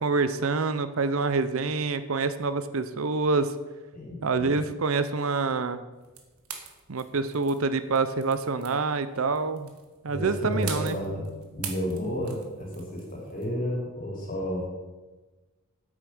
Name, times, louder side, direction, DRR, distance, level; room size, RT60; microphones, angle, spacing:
voice 1, 0.0-3.5 4.2-5.8 6.9-9.7 10.0-11.0, right 4 dB, 65° right, 12 dB, 0.7 m, -26 dB
voice 2, 3.9-4.5 10.1-14.7, equal, 40° left, -2 dB, 3.5 m, -32 dB
sound 1, 5.9-13.5, right 7 dB, 85° right, 1.6 m, -44 dB
8.8 x 8.5 x 6.2 m, 1.2 s
head